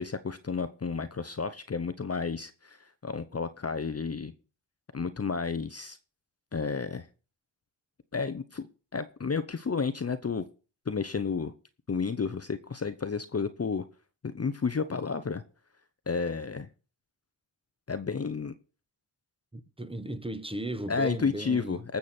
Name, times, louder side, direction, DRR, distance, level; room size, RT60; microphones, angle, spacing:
voice 1, 0.0-4.3 4.9-6.0 6.5-7.1 8.1-8.7 8.9-10.4 10.9-11.5 11.9-13.8 14.2-15.4 16.1-16.7 17.9-18.5 20.9-22.0, left 5 dB, 30° left, 0.8 m, -31 dB
voice 2, 19.5-21.8, right 1 dB, 10° right, 1.3 m, -36 dB
19.0 x 7.1 x 4.4 m
cardioid pair, 65°, 47 cm